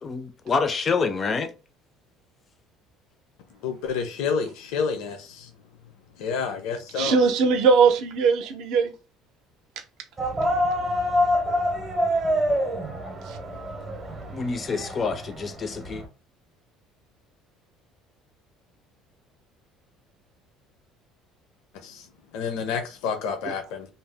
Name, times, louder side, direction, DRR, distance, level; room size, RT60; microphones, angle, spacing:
voice 1, 0.0-1.5 14.3-16.0, left 4 dB, 25° left, 0.4 m, -27 dB
voice 2, 3.6-5.5 6.2-7.2 21.8-22.1 22.3-23.9, left 6 dB, 80° left, 0.6 m, -29 dB
voice 3, 6.9-8.9 13.2-13.4 23.4-23.5, right 5 dB, 60° right, 0.6 m, -20 dB
sound 1, 10.2-16.1, equal, 20° right, 0.6 m, -26 dB
2.7 x 2.0 x 3.3 m
cardioid pair, 170°, 0 cm